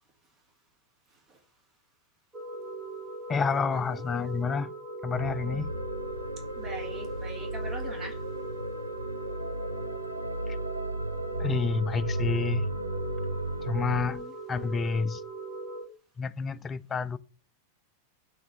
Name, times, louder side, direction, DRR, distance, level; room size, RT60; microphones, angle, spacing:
sound 1, 2.3-15.8, right 2 dB, 10° right, 1.3 m, -39 dB
voice 1, 3.3-4.7 5.0-5.8 11.4-12.7 13.6-14.2 14.5-15.2 16.2-17.2, left 5 dB, 20° left, 0.4 m, -29 dB
sound 2, 5.1-14.1, right 1 dB, 85° right, 0.5 m, -34 dB
voice 2, 6.6-8.2 14.0-14.3, right 1 dB, 25° right, 1.7 m, -42 dB
7.1 x 3.3 x 5.6 m
figure-of-eight pair, 90°, 0 cm